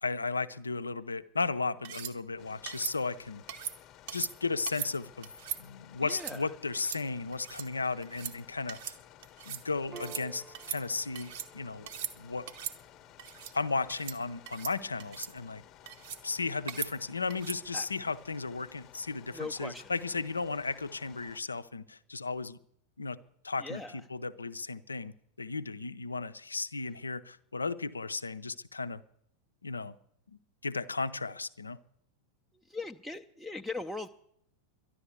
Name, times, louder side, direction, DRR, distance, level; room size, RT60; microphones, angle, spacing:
voice 1, 0.0-3.4 4.1-5.3 5.6-9.0 9.5-11.9 12.2-12.5 13.5-15.6 16.2-22.6 23.0-23.2 23.4-29.0 29.6-30.0 30.6-31.8, left 4 dB, 75° left, 13 dB, 0.5 m, -35 dB
sound 1, 1.8-2.1 2.7-2.9 3.5-3.8 4.1-4.3 4.7-4.9 5.2-5.6 6.1-6.4 6.7-7.0 7.3-7.7 8.0-8.3 8.7-9.0 9.2-9.6 10.0-10.2 10.5-11.5 11.8-12.1 12.5-12.8 13.2-13.5 13.9-14.2 14.5-14.7 15.0-15.3 15.9-16.2 16.7-16.9 17.3-17.6, right 8 dB, 55° right, 1.1 m, -39 dB
sound 2, 2.4-21.4, left 13 dB, 35° left, 1.0 m, -56 dB
voice 2, 6.1-6.4 17.7-17.9 19.3-19.8 23.6-23.9 32.7-34.1, left 2 dB, ahead, 2 dB, 0.5 m, -39 dB
Piano, 9.9-16.8, right 4 dB, 30° right, 1.0 m, -55 dB
11.5 x 11.0 x 8.2 m, 0.70 s
figure-of-eight pair, 90°, 0 cm